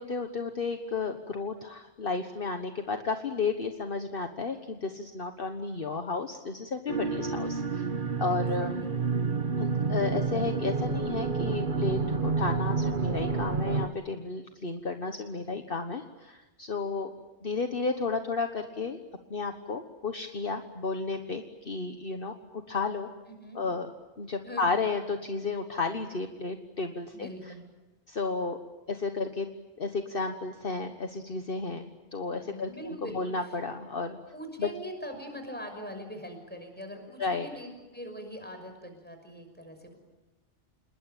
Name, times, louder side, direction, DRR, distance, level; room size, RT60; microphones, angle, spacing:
voice 1, 0.0-7.8 8.2-8.8 9.6-17.1 17.4-19.0 19.3-23.1 23.5-23.9 24.2-27.3 28.1-28.6 28.9-29.5 29.8-32.7 33.1-34.2 34.6-34.7 37.2-37.5, left 4 dB, 50° left, 6 dB, 1.5 m, -32 dB
sound 1, 6.9-13.9, right 4 dB, 45° right, 1.4 m, -29 dB
voice 2, 8.3-8.9 16.9-17.0 23.3-23.6 24.4-24.9 27.1-27.6 32.4-33.2 34.3-40.0, equal, 10° left, 5 dB, 6.0 m, -42 dB
27.5 x 21.5 x 9.1 m, 1.1 s
omnidirectional pair, 1.2 m